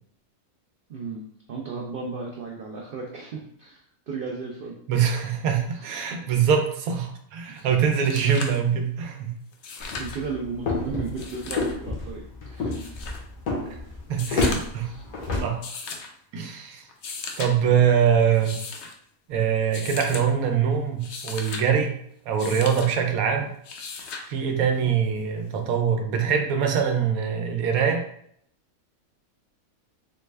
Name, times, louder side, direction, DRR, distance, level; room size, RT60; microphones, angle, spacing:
voice 1, 0.9-4.8 5.7-6.2 7.5-7.7 10.0-12.9 14.8-15.0, right 4 dB, 60° right, -1 dB, 0.5 m, -35 dB
voice 2, 4.9-9.3 10.9-11.0 14.1-14.9 15.4-15.6 16.3-16.9 17.4-18.5 19.3-21.9 22.3-23.5 24.3-28.0, right 7 dB, 90° right, 3 dB, 1.1 m, -23 dB
sound 1, 7.6-7.7 7.9-8.6 9.5-10.2 11.1-11.7 12.7-13.2 14.1-14.8 15.6-16.1 16.9-17.5 18.3-18.9 19.7-20.3 20.9-21.6 22.4-22.9 23.6-24.3 25.7-25.8, left 4 dB, 65° left, 0.7 m, -36 dB
sound 2, 9.8-15.4, left 3 dB, 85° left, 1.5 m, -29 dB
4.0 x 2.1 x 3.3 m, 0.67 s
omnidirectional pair, 1.5 m